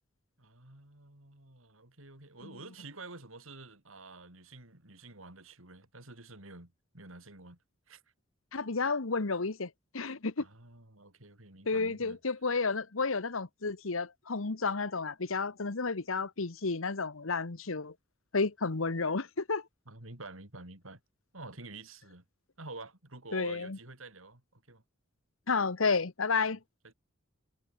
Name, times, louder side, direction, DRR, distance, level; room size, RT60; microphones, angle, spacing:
voice 1, 0.4-7.6 7.9-8.0 10.4-12.2 19.9-21.0 21.3-22.2 22.6-24.8 26.4-26.6 26.8-26.9, right 2 dB, 85° right, 4.9 m, -49 dB
voice 2, 8.5-10.4 11.7-17.9 18.3-19.6 23.3-23.8 25.5-26.6, left 4 dB, 80° left, 1.2 m, -31 dB
head